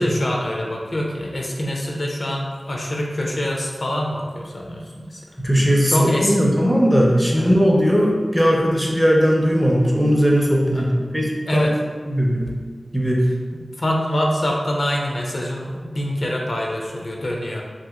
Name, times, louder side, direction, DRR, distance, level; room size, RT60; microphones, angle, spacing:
voice 1, 0.0-5.4 5.9-6.3 7.4-7.5 10.7-10.9 11.5-11.7 13.5-17.6, left 1 dB, 60° left, -1 dB, 0.4 m, -25 dB
voice 2, 5.4-11.7 12.1-12.5 12.9-13.3, equal, ahead, -2 dB, 0.5 m, -18 dB
2.8 x 2.7 x 2.3 m, 1.5 s
wide cardioid pair, 60°, 0 cm